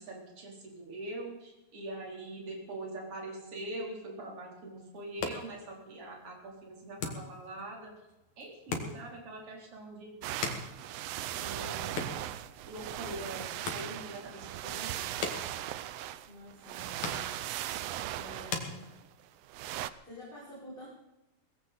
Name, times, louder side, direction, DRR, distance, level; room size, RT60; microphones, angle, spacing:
voice 1, 0.0-7.9 8.4-10.2 11.2-12.3 12.6-15.1, right 1 dB, 50° right, 0 dB, 4.6 m, -43 dB
sound 1, 4.9-19.4, left 5 dB, 75° left, 3.3 m, -43 dB
sound 2, 10.2-19.9, right 13 dB, 75° right, 1.5 m, -38 dB
voice 2, 16.2-17.1 18.1-18.9 20.0-20.9, equal, 15° left, -8 dB, 6.0 m, -48 dB
19.5 x 16.0 x 4.2 m, 0.98 s
omnidirectional pair, 3.4 m